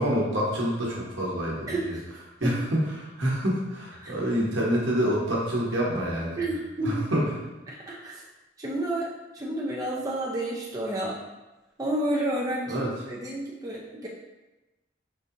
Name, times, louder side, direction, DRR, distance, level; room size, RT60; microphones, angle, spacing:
voice 1, 0.0-1.9 2.4-2.8 3.2-6.4 6.8-7.2 12.7-12.9, equal, 85° right, -4 dB, 1.0 m, -27 dB
voice 2, 1.7-2.0 2.4-2.6 4.0-4.1 6.4-7.0 7.7-8.2 8.6-11.2 11.8-14.1, right 1 dB, 20° right, -4 dB, 0.4 m, -30 dB
4.9 x 2.7 x 2.5 m, 1.0 s
head